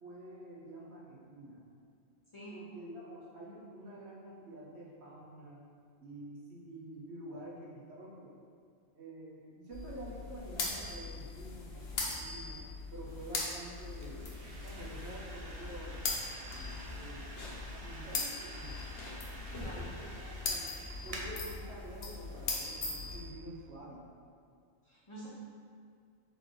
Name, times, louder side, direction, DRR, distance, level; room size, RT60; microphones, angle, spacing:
voice 1, 0.0-1.6 2.5-5.6 6.0-8.3 8.9-12.6 12.9-16.1 16.8-17.3 17.6-18.7 19.3-20.7 21.0-24.2, right 1 dB, 75° right, -5 dB, 1.2 m, -48 dB
sound 1, 9.7-23.3, left 3 dB, 70° left, 1.0 m, -40 dB
sound 2, 13.1-23.1, right 1 dB, 45° right, 0.5 m, -50 dB
voice 2, 19.6-19.9 24.9-25.3, right 1 dB, 30° left, -7 dB, 0.6 m, -47 dB
4.0 x 3.4 x 3.8 m, 2.3 s
omnidirectional pair, 1.1 m